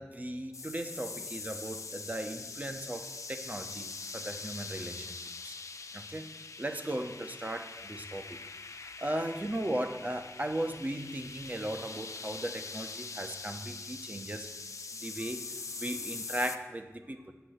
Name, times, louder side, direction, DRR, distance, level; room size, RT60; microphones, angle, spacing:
voice 1, 0.0-3.9 4.1-5.5 5.9-6.3 6.6-8.4 8.8-14.5 15.0-15.4 15.8-17.3, right 1 dB, 30° right, 6 dB, 0.9 m, -37 dB
sound 1, 0.5-16.6, left 4 dB, 75° left, 0.5 m, -43 dB
8.2 x 6.6 x 8.1 m, 1.3 s
wide cardioid pair, 60°, 5 cm